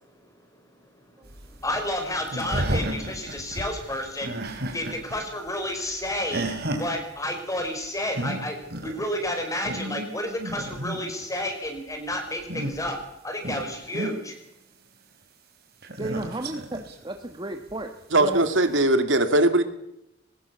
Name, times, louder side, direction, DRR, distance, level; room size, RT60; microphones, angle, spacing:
sound 1, 1.3-5.2 5.5-6.9 7.8-7.9 8.1-8.4 8.7-9.0 9.4-11.2 12.3-13.0 13.4-14.1 15.8-16.9 17.7-17.8 18.7-18.8, right 1 dB, 55° right, 4.2 m, -32 dB
voice 1, 1.6-6.5 6.8-13.0 13.2-14.4, left 1 dB, 15° left, 5 dB, 5.3 m, -31 dB
voice 2, 16.0-17.9 18.2-18.5, right 1 dB, 25° right, 5 dB, 1.7 m, -33 dB
voice 3, 18.1-19.6, right 1 dB, 75° right, 9 dB, 2.3 m, -20 dB
22.5 x 19.5 x 7.1 m, 0.83 s
head